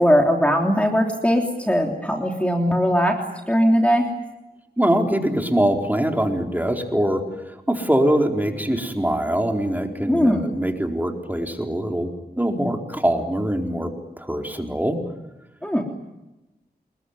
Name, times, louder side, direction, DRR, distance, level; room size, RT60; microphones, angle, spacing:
voice 1, 0.0-3.2 3.5-4.1 10.1-10.5 15.6-15.8, equal, 10° left, 1 dB, 3.3 m, -19 dB
voice 2, 4.8-12.1 12.4-15.0, right 1 dB, 10° right, 3 dB, 4.2 m, -23 dB
27.0 x 22.0 x 9.8 m, 1.0 s
wide cardioid pair, 60°, 17 cm